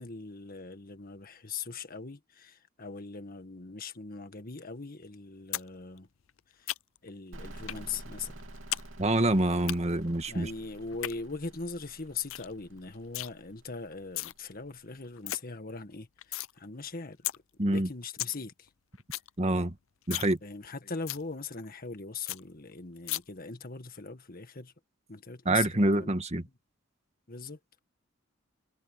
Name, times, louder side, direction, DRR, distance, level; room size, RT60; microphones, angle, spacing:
voice 1, 0.0-6.1 6.5-6.7 7.0-8.3 10.3-17.3 17.7-18.7 20.4-24.7 25.1-26.1 27.3-27.8, left 4 dB, 45° left, 1.7 m, -40 dB
sound 1, 5.5-5.7 6.0-7.1 7.7-7.8 8.2-8.9 9.1-9.7 10.8-11.1 11.6-11.7 12.0-12.1 12.3-12.5 12.8-13.3 13.9-14.3 14.8-14.9 15.0-15.4 15.8-16.5 16.9-17.0 17.2-17.4 17.7-17.8 18.0-18.3 18.7-18.8 19.0-19.3 19.6-19.7 20.0-20.3 20.6-20.7 21.1-21.2 21.6-21.7 21.9-22.0 22.3-22.4 23.1-23.2, left 16 dB, 75° left, 0.5 m, -35 dB
sound 2, 7.3-14.9, right 1 dB, 70° right, 3.4 m, -49 dB
voice 2, 9.0-10.5 17.6-17.9 19.4-19.7 20.1-20.4 25.4-26.4, right 1 dB, 35° right, 1.6 m, -26 dB
head